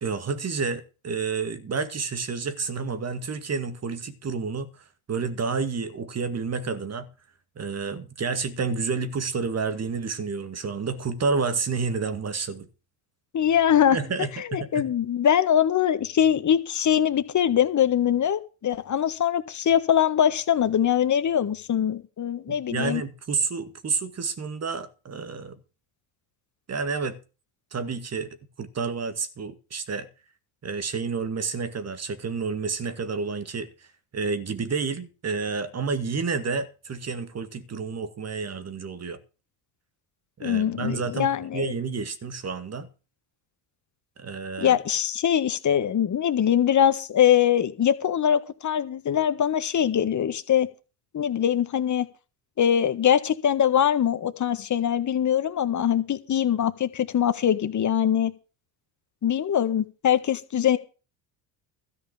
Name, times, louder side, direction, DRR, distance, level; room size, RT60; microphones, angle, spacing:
voice 1, 0.0-4.7 5.1-7.1 7.6-12.7 13.9-14.9 22.5-25.6 26.7-27.2 27.7-30.1 30.6-33.9 34.1-39.2 40.4-42.9 44.2-44.8, right 5 dB, 30° right, 2.0 m, -30 dB
voice 2, 13.3-14.0 14.5-23.0 40.4-41.7 44.6-50.7 51.1-52.1 52.6-58.3 59.2-60.8, left 9 dB, 35° left, 1.6 m, -22 dB
13.5 x 5.5 x 8.8 m
supercardioid pair, 85°, 48 cm